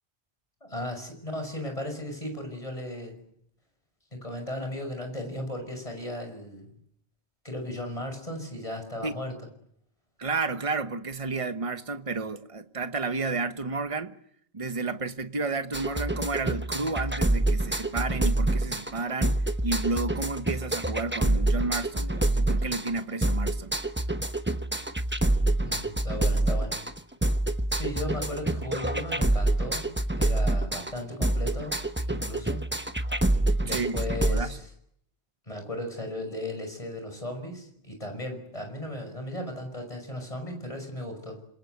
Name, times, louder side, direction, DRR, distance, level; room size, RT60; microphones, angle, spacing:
voice 1, 0.6-3.2 4.1-6.7 7.4-9.4 25.6-26.8 27.7-31.8 32.1-32.6 33.6-34.7 35.5-41.4, left 1 dB, 30° left, 6.2 m, -36 dB
voice 2, 10.2-14.2 14.5-23.7 33.7-34.0 34.3-34.6, right 3 dB, 30° right, 1.2 m, -31 dB
sound 1, 15.7-34.4, right 1 dB, 10° right, 1.0 m, -27 dB
26.5 x 24.0 x 8.0 m
omnidirectional pair, 1.1 m